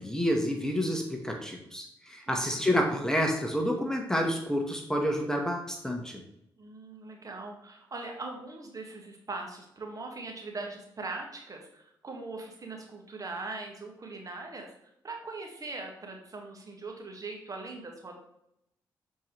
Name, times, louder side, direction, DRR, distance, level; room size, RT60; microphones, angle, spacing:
voice 1, 0.0-6.2, equal, 5° left, 2 dB, 1.3 m, -29 dB
voice 2, 2.3-2.6 6.6-14.7 15.0-18.2, right 3 dB, 40° right, 1 dB, 1.7 m, -41 dB
7.0 x 4.5 x 3.2 m, 0.79 s
supercardioid pair, 50°, 9 cm